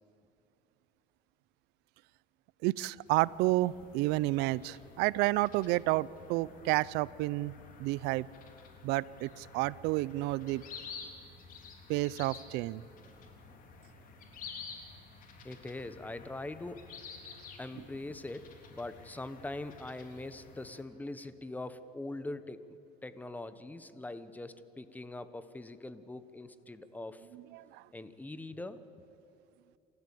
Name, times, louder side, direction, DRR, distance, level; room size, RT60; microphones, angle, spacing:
voice 1, 2.6-8.3 8.8-10.6 11.9-12.8 27.5-27.8, right 19 dB, 75° right, 22 dB, 0.5 m, -30 dB
sound 1, 3.0-20.8, left 5 dB, 55° left, 3.4 m, -51 dB
voice 2, 15.4-16.9 17.6-22.8 23.0-27.3 27.9-28.8, left 2 dB, 10° left, 13 dB, 1.1 m, -42 dB
28.0 x 14.5 x 8.5 m, 2.8 s
cardioid pair, 115°, 17 cm